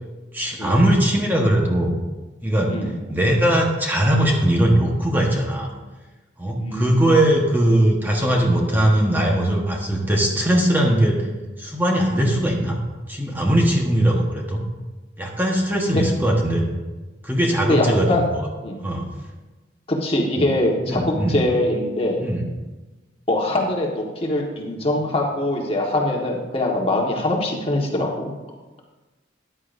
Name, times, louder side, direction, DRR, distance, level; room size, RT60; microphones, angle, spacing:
voice 1, 0.3-1.9 2.4-2.7 3.1-5.7 6.4-11.3 11.6-12.8 13.1-14.6 15.2-16.6 17.2-18.4 18.8-19.1 20.4-20.5 20.9-21.4 22.2-22.4, right 1 dB, 10° right, -1 dB, 1.2 m, -20 dB
voice 2, 6.6-7.1 12.2-12.4 15.9-16.0 17.7-18.2 18.6-18.8 19.9-22.2 23.3-28.3, left 1 dB, 30° left, -1 dB, 1.5 m, -23 dB
14.0 x 10.0 x 2.6 m, 1.2 s
head